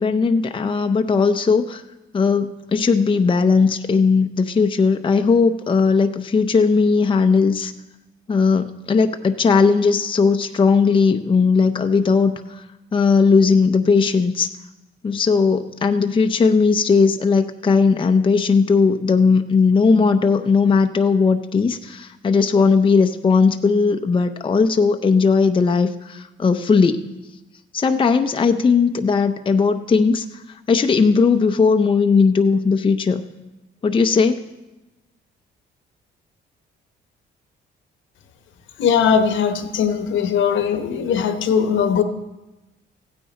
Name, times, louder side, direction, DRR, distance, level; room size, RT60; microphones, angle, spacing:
voice 1, 0.0-1.8 2.1-7.7 8.3-12.6 12.9-14.5 15.0-27.1 27.7-33.2 33.8-34.4, left 5 dB, 25° left, 6 dB, 0.6 m, -17 dB
voice 2, 38.8-42.0, left 7 dB, 75° left, 8 dB, 1.1 m, -19 dB
15.5 x 9.3 x 4.2 m, 1.0 s
cardioid pair, 90°, 20 cm